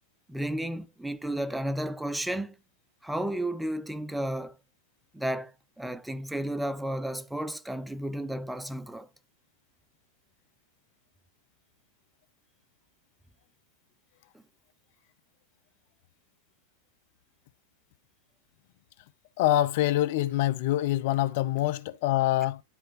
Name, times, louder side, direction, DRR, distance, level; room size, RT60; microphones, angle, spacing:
voice 1, 0.3-2.6 3.0-4.6 5.1-5.5 5.8-9.1 14.3-14.4, right 1 dB, 5° right, 0.5 m, -32 dB
voice 2, 19.4-22.6, left 14 dB, 50° left, 0.6 m, -25 dB
11.5 x 4.5 x 3.0 m
figure-of-eight pair, 90°, 0 cm